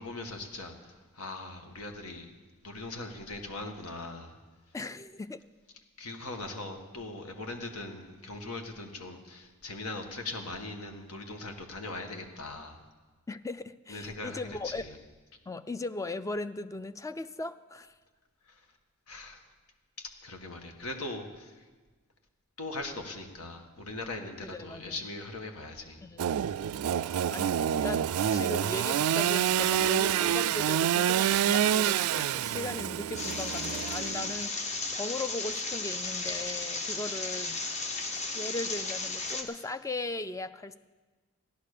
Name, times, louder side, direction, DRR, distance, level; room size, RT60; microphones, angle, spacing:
voice 1, 0.0-2.3 2.6-4.4 6.0-12.8 13.9-14.9 18.4-18.7 19.1-19.4 20.0-21.6 22.6-26.1, left 2 dB, 80° left, 4 dB, 1.7 m, -40 dB
voice 2, 4.7-5.4 13.3-14.8 15.5-17.9 24.4-25.0 26.0-26.3 27.3-37.6 38.3-40.8, left 2 dB, 15° left, 13 dB, 0.4 m, -38 dB
Engine / Sawing, 26.2-34.4, right 9 dB, 75° right, 0.3 m, -27 dB
sound 1, 33.1-39.4, left 3 dB, 30° left, 1.2 m, -34 dB
14.5 x 10.5 x 6.7 m, 1.3 s
head